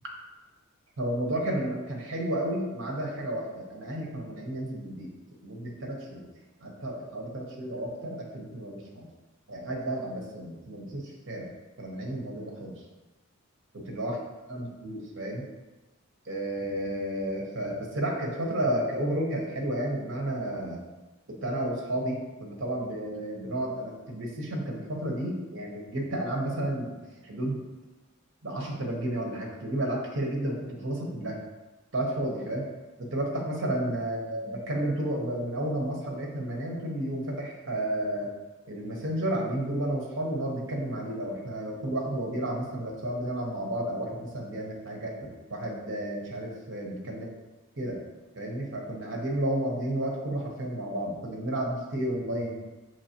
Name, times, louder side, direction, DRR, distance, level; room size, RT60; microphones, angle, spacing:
voice 1, 1.0-5.1 5.4-6.3 6.6-9.1 9.5-11.5 11.8-12.7 13.7-14.2 14.5-15.4 16.3-20.8 21.3-27.0 27.2-27.6 28.4-31.4 31.9-32.6 33.0-38.3 38.7-47.3 47.8-48.0 48.3-52.6, right 1 dB, 60° right, -1 dB, 0.9 m, -32 dB
5.5 x 3.1 x 2.8 m, 1.2 s
head